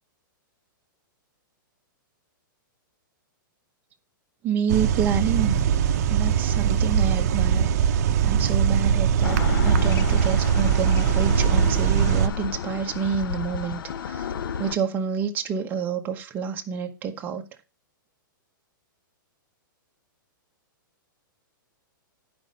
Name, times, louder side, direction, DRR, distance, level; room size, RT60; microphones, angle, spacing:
voice 1, 4.4-5.6 6.1-7.7 7.9-14.3 14.6-17.5, right 7 dB, 15° right, 1.0 m, -28 dB
sound 1, 4.7-12.3, right 8 dB, 50° right, 0.7 m, -21 dB
sound 2, 9.2-14.8, left 7 dB, 80° left, 0.8 m, -32 dB
10.5 x 5.2 x 5.3 m
hypercardioid pair, 165°, 11 cm